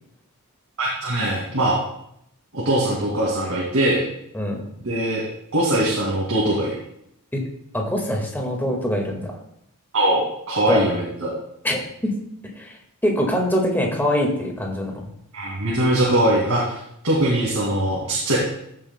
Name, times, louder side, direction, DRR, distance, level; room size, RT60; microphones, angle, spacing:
voice 1, 0.8-1.8 2.5-4.0 4.8-5.2 5.5-6.7 9.9-11.3 15.3-16.8 17.0-18.4, right 1 dB, 65° right, -4 dB, 2.3 m, -21 dB
voice 2, 7.7-9.3 10.7-10.9 11.6-12.1 12.6-14.9, equal, 10° left, 0 dB, 1.7 m, -24 dB
14.0 x 8.2 x 2.2 m, 0.76 s
head